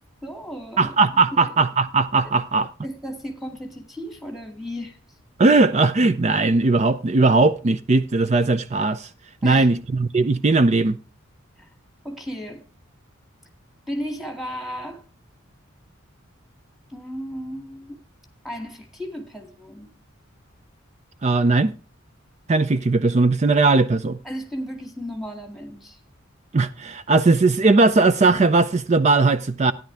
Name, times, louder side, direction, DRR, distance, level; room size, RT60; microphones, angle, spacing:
voice 1, 0.2-1.0 1.3-1.5 2.2-2.3 2.8-5.2 9.4-9.7 11.6-11.7 12.0-12.6 13.9-15.0 16.9-18.0 18.4-19.9 24.2-26.0, equal, ahead, 2.2 m, -34 dB
voice 2, 0.8-2.7 5.4-9.1 9.4-11.0 21.2-21.7 22.5-24.2 26.5-29.7, right 3 dB, 35° right, 0.4 m, -18 dB
13.0 x 10.5 x 3.3 m
head